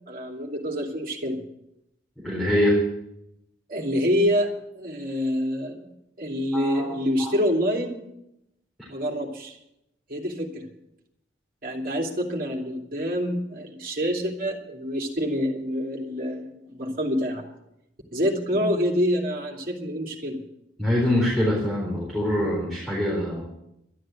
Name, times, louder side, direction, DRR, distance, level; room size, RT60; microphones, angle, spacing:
voice 1, 0.1-1.4 3.7-5.9 6.2-8.1 8.9-9.6 10.1-10.7 11.6-17.4 18.1-20.4, equal, 45° right, 0 dB, 2.7 m, -27 dB
voice 2, 2.2-2.8 6.5-6.9 7.2-7.3 20.8-23.5, left 1 dB, ahead, -6 dB, 4.1 m, -24 dB
12.5 x 11.5 x 7.7 m, 0.82 s
head